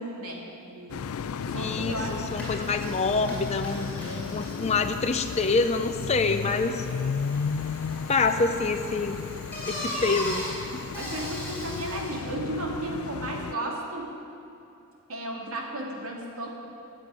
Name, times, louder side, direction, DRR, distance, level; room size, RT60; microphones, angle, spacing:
voice 1, 0.0-2.7 3.9-4.4 10.9-14.1 15.1-16.5, right 1 dB, 85° right, -1 dB, 2.5 m, -35 dB
sound 1, 0.9-13.5, left 6 dB, 85° left, 0.4 m, -34 dB
Bicycle, 1.5-12.3, left 1 dB, 5° left, 4.4 m, -40 dB
voice 2, 1.6-6.9 8.1-9.3 9.7-10.5, left 3 dB, 30° left, 6 dB, 0.5 m, -26 dB
14.0 x 7.8 x 9.6 m, 2.7 s
head